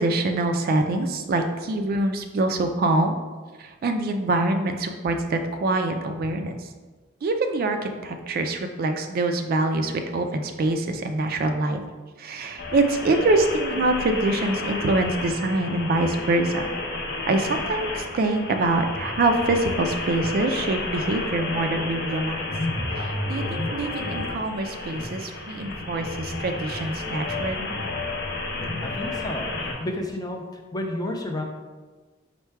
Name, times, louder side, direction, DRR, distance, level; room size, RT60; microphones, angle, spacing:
voice 1, 0.0-3.2 3.8-6.5 7.2-7.8 8.0-11.8 12.2-16.6 17.3-22.4 23.3-27.8, right 2 dB, 50° right, 6 dB, 0.3 m, -24 dB
sound 1, 12.6-29.7, left 2 dB, 55° left, 0.7 m, -31 dB
voice 2, 28.8-30.4 30.7-31.4, left 1 dB, 20° left, 2 dB, 0.4 m, -31 dB
4.5 x 2.2 x 4.5 m, 1.3 s
head